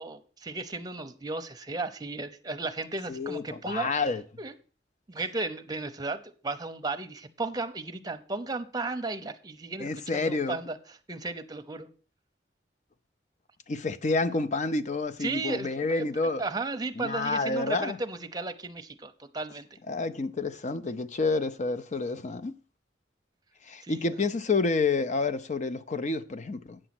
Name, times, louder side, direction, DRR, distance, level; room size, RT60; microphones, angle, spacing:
voice 1, 0.0-4.0 4.4-4.5 5.1-11.9 15.2-15.7 15.9-16.1 16.4-19.7 23.8-24.2, right 3 dB, 20° right, 0.7 m, -35 dB
voice 2, 3.1-4.2 9.8-10.6 13.7-16.4 17.0-18.0 19.9-22.6 23.7-26.8, left 3 dB, 40° left, 0.6 m, -29 dB
8.9 x 6.2 x 5.9 m
head